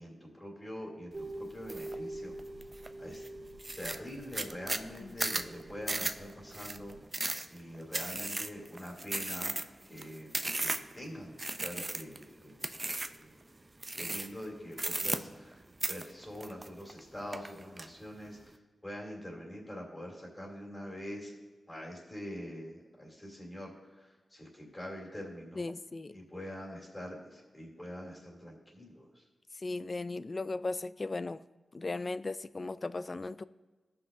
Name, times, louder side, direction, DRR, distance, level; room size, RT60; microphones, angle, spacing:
voice 1, 0.0-2.4 3.0-3.2 3.8-7.0 7.2-9.6 9.9-10.3 10.6-12.8 13.1-13.5 13.9-18.5 18.8-21.4 21.7-25.7 26.1-29.2, equal, 25° left, -2 dB, 2.8 m, -44 dB
sound 1, 1.1-7.0, right 1 dB, 45° right, 2.1 m, -46 dB
sound 2, 1.7-1.9 2.4-2.9 3.2-3.3 3.6-11.0 11.4-12.2 12.6-13.2 13.8-14.4 14.7-15.5 15.8-17.0 17.3-17.9, right 2 dB, 30° right, 0.5 m, -35 dB
voice 2, 25.5-26.2 29.5-31.4 31.7-33.4, left 3 dB, 40° left, 16 dB, 0.3 m, -37 dB
16.0 x 5.9 x 2.6 m, 1.3 s
cardioid pair, 60°, 0 cm